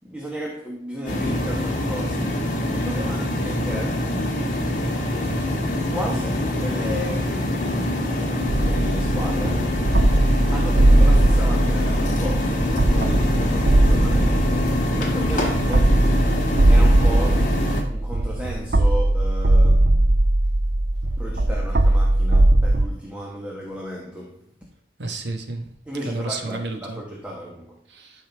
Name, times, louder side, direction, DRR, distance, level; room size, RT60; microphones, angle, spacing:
voice 1, 0.0-4.2 5.9-9.8 10.5-16.1 16.7-20.1 21.0-24.5 25.9-27.8, equal, 5° right, 1.0 m, -34 dB
sound 1, 1.1-17.8, left 1 dB, 45° left, 1.6 m, -24 dB
sound 2, 8.5-22.9, right 1 dB, 50° right, 0.6 m, -19 dB
voice 2, 25.0-25.7 26.0-27.0 27.9-28.3, right 2 dB, 70° right, 1.3 m, -31 dB
12.0 x 5.5 x 3.4 m
head